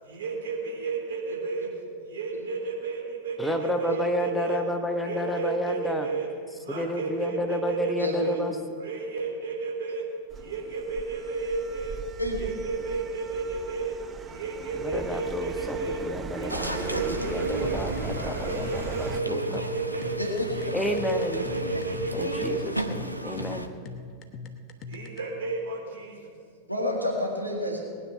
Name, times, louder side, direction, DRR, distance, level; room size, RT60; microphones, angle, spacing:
voice 1, 0.0-1.7 2.1-4.6 5.0-6.3 6.6-8.4 8.8-10.0 10.3-12.0 12.4-13.9 14.2-16.0 16.3-17.8 18.1-20.2 20.5-22.6 24.9-26.3, right 4 dB, 60° right, -1 dB, 3.5 m, -32 dB
voice 2, 3.4-6.1 6.7-8.5 14.8-19.6 20.7-21.4 22.1-23.7, left 1 dB, 5° left, 4 dB, 1.1 m, -31 dB
voice 3, 8.0-8.3 12.2-12.4 20.2-20.4 20.8-20.9 26.7-27.8, left 1 dB, 90° right, -1 dB, 1.9 m, -29 dB
sound 1, 10.3-19.2, right 6 dB, 25° right, 0.6 m, -39 dB
sound 2, 16.5-23.7, equal, 90° left, 0.7 m, -34 dB
sound 3, 17.6-25.2, left 4 dB, 35° left, 1.1 m, -41 dB
19.0 x 9.8 x 5.7 m, 2.1 s
figure-of-eight pair, 90°, 0 cm